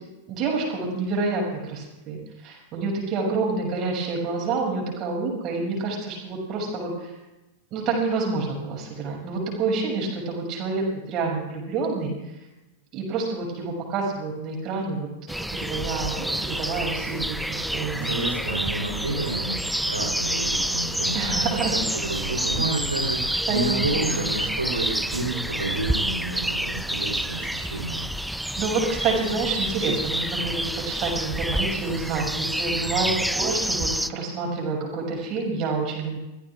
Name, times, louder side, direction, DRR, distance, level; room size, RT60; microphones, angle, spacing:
voice 1, 0.3-2.2 2.4-7.1 7.7-12.1 12.9-15.1 15.5-18.1 21.1-22.1 23.5-24.3 28.6-36.2, right 3 dB, 35° right, -1 dB, 6.5 m, -28 dB
sound 1, 15.3-34.1, right 1 dB, ahead, 0.5 m, -28 dB
voice 2, 17.9-28.0 32.8-33.3, right 2 dB, 80° right, 2 dB, 3.6 m, -30 dB
27.0 x 17.0 x 2.5 m, 1.0 s
figure-of-eight pair, 90°, 0 cm